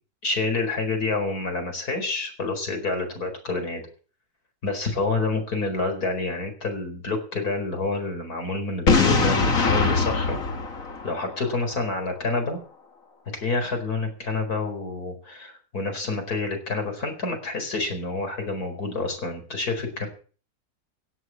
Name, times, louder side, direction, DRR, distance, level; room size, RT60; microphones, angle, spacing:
voice 1, 0.2-3.8 4.6-10.4 11.0-12.6 13.4-20.1, left 3 dB, 75° left, 5 dB, 5.0 m, -28 dB
Boom, 8.9-11.7, left 4 dB, 60° left, 2.3 m, -22 dB
17.0 x 7.9 x 7.6 m, 0.40 s
omnidirectional pair, 1.6 m